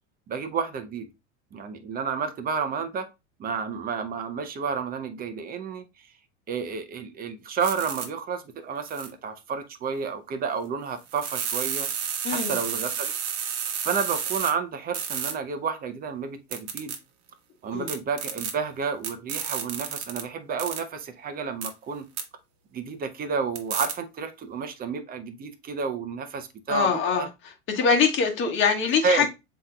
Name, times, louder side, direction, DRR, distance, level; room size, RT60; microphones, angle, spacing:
voice 1, 0.3-1.1 1.5-3.1 3.4-5.8 6.5-11.9 12.3-13.1 13.8-16.9 17.6-22.1 22.7-27.3 29.0-29.3, right 5 dB, 25° right, 0.6 m, -30 dB
sound 1, 7.6-8.1 8.9-9.1 11.1-14.5 14.9-15.3 16.5-17.0 17.9-18.5 19.0-20.2 20.6-20.8 21.6-21.7 22.2-22.3 23.6-23.9, right 8 dB, 45° right, 1.1 m, -31 dB
voice 2, 12.2-12.5 17.7-17.9 26.7-27.2 27.7-29.3, left 6 dB, 30° left, 1.3 m, -23 dB
7.3 x 3.0 x 2.2 m
supercardioid pair, 125°, 39 cm